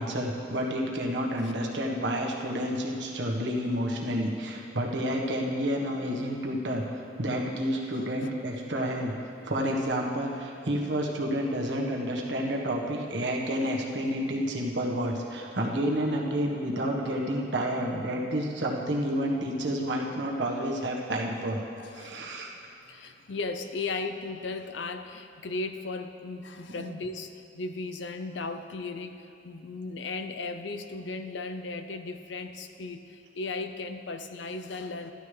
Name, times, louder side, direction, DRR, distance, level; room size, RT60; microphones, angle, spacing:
voice 1, 0.0-9.1 9.4-21.6 21.9-22.5 26.8-27.0, equal, 70° right, -1 dB, 1.4 m, -30 dB
voice 2, 7.9-8.3 21.8-22.3 22.9-35.1, left 3 dB, 75° left, 8 dB, 0.6 m, -36 dB
14.0 x 11.5 x 3.3 m, 2.6 s
head